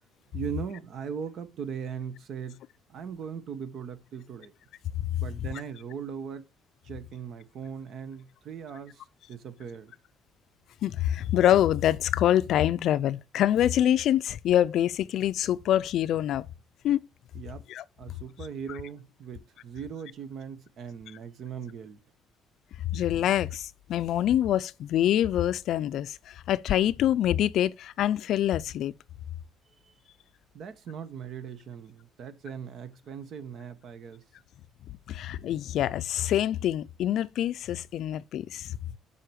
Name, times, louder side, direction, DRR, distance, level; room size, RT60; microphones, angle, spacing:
voice 1, 0.3-2.6 2.9-4.5 5.2-6.5 6.8-9.0 9.3-9.9 17.3-17.7 18.0-22.0 30.5-34.2, right 7 dB, 50° right, 1.2 m, -39 dB
voice 2, 10.8-16.5 16.8-17.0 17.7-17.8 22.9-28.9 35.1-38.7, left 11 dB, 60° left, 0.5 m, -25 dB
7.6 x 5.8 x 6.4 m
cardioid pair, 150°, 0 cm